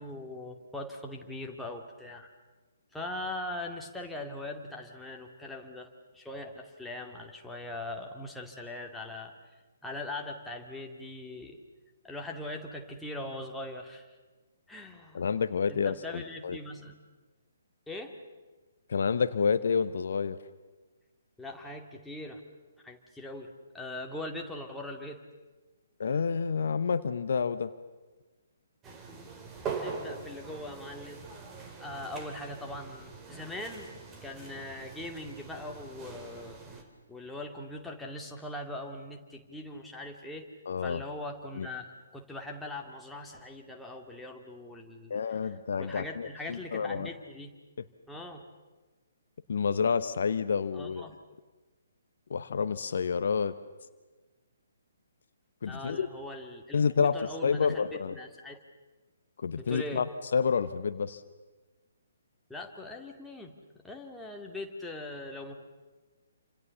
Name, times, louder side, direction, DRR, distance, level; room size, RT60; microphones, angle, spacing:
voice 1, 0.0-2.3 2.9-5.9 6.1-9.3 9.8-11.6 12.0-14.1 14.7-15.2 15.7-17.0 17.9-18.2 21.4-22.4 22.8-23.5 23.7-25.2 29.1-29.3 29.7-31.2 31.8-33.9 34.2-36.8 37.1-40.5 40.8-45.2 45.8-47.6 48.1-48.4 50.7-51.2 55.6-58.6 59.6-60.0 62.5-63.5 63.8-65.5, left 1 dB, 5° left, 0 dB, 2.3 m, -41 dB
voice 2, 15.1-16.6 18.9-20.4 26.0-27.7 40.7-41.0 41.6-41.7 45.1-47.1 49.5-51.0 52.3-53.5 55.6-56.1 56.7-58.2 59.4-61.2, left 6 dB, 55° left, 12 dB, 0.9 m, -29 dB
sound 1, 28.8-36.8, right 5 dB, 15° right, 2.9 m, -42 dB
28.5 x 26.5 x 7.1 m, 1.3 s
figure-of-eight pair, 130°, 0 cm